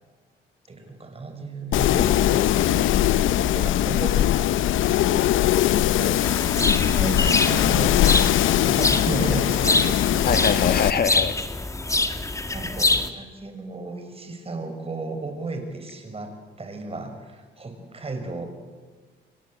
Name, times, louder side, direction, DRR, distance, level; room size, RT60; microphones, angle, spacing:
voice 1, 0.7-2.5 3.0-6.5 6.8-8.0 8.6-10.2 11.9-12.2 12.5-18.5, right 3 dB, 30° right, 6 dB, 6.3 m, -34 dB
Wind, 1.7-10.9, left 13 dB, 80° left, 0.8 m, -21 dB
voice 2, 2.0-2.5 6.5-7.3 10.2-11.3, left 6 dB, 50° left, 10 dB, 1.7 m, -25 dB
sound 1, 6.2-13.1, left 2 dB, 15° left, 1.9 m, -25 dB
29.5 x 24.0 x 8.1 m, 1.4 s
cardioid pair, 90°, 20 cm